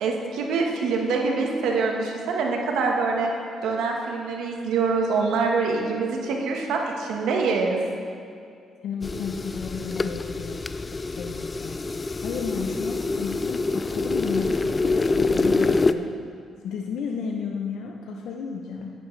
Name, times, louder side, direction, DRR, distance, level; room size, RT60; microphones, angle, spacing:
voice 1, 0.0-3.3 3.6-7.8, right 4 dB, 85° right, 1 dB, 1.3 m, -25 dB
voice 2, 8.8-10.6 10.9-16.1 16.6-18.9, left 6 dB, 75° left, 1 dB, 0.6 m, -33 dB
sound 1, 9.0-15.9, left 3 dB, 25° left, 0.3 m, -26 dB
10.5 x 9.6 x 3.3 m, 2.4 s
cardioid pair, 90°, 0 cm